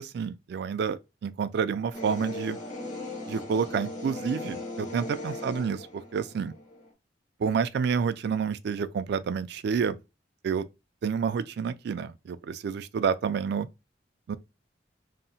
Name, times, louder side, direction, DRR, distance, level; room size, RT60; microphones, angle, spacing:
voice 1, 0.0-2.6 3.3-6.5 7.4-10.0 10.4-10.7 11.0-13.7 14.3-14.4, right 6 dB, 65° right, 0.3 m, -29 dB
sound 1, 1.9-6.9, left 2 dB, 45° left, 0.9 m, -38 dB
2.8 x 2.0 x 2.7 m
head